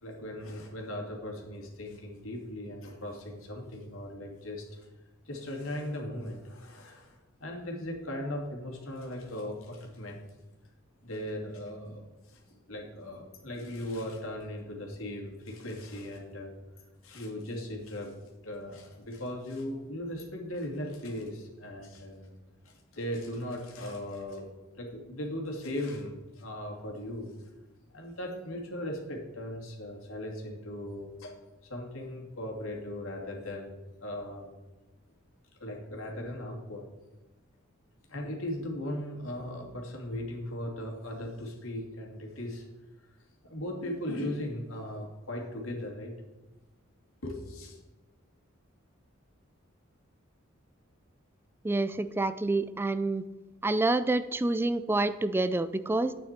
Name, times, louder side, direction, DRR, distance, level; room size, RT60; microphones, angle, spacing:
voice 1, 0.0-4.9 5.3-10.2 11.0-16.5 17.0-22.3 22.6-24.5 24.7-27.5 27.9-31.3 31.6-33.7 34.0-34.5 35.6-36.9 38.1-42.6 43.4-46.1 47.2-47.8, left 1 dB, 85° left, 0 dB, 2.5 m, -38 dB
voice 2, 51.6-53.2 53.6-56.1, right 2 dB, 10° right, 13 dB, 0.3 m, -28 dB
10.5 x 8.8 x 4.4 m, 1.1 s
head